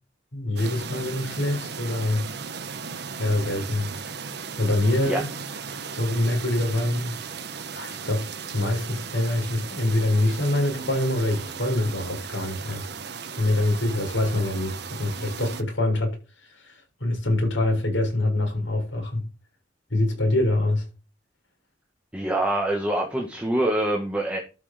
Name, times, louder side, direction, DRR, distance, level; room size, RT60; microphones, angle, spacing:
voice 1, 0.3-2.2 3.2-3.9 4.6-5.3 6.0-7.2 7.7-8.2 8.5-12.9 13.3-19.2 19.9-20.9, left 1 dB, 80° left, 6.7 m, -25 dB
sound 1, 0.6-15.6, right 5 dB, 60° right, 1.4 m, -36 dB
voice 2, 22.1-24.4, right 1 dB, 5° right, 2.0 m, -25 dB
13.0 x 6.9 x 5.3 m
head